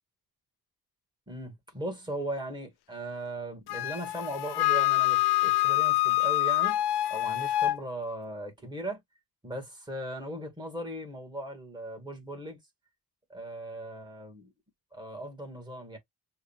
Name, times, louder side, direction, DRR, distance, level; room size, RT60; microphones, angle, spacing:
voice 1, 1.3-6.8 7.1-9.0 9.4-12.6 13.3-14.5 14.9-16.0, right 1 dB, 10° right, 1.9 m, -38 dB
Wind instrument woodwind instrument, 3.7-7.8, left 16 dB, 75° left, 0.5 m, -26 dB
6.5 x 2.7 x 2.4 m
wide cardioid pair, 170°, 39 cm